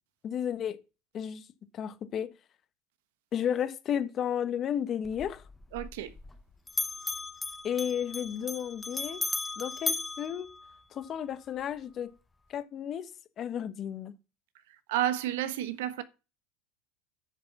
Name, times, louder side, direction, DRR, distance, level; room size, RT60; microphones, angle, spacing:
voice 1, 0.2-0.8 1.1-1.4 1.7-2.3 3.3-5.4 7.6-9.2 9.6-10.5 10.9-12.1 12.5-13.1 13.4-14.1, left 9 dB, 35° left, 1.2 m, -33 dB
Bell, 5.0-6.4 6.7-11.2, left 3 dB, 10° left, 0.9 m, -36 dB
voice 2, 5.7-6.1 14.9-16.0, right 12 dB, 80° right, 1.2 m, -30 dB
9.4 x 6.6 x 6.0 m
supercardioid pair, 125°, 0 cm